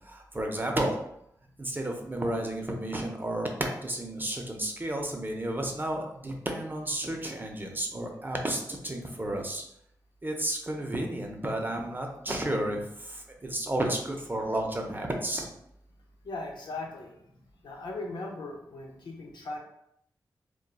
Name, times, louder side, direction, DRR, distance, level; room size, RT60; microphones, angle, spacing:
voice 1, 0.1-0.9 1.6-9.6 10.2-12.8 13.4-15.5, right 1 dB, 25° right, 2 dB, 0.6 m, -32 dB
voice 2, 16.2-17.1 17.6-19.6, left 2 dB, 75° left, 0 dB, 0.5 m, -38 dB
2.8 x 2.2 x 2.2 m, 0.73 s
supercardioid pair, 40°, 8 cm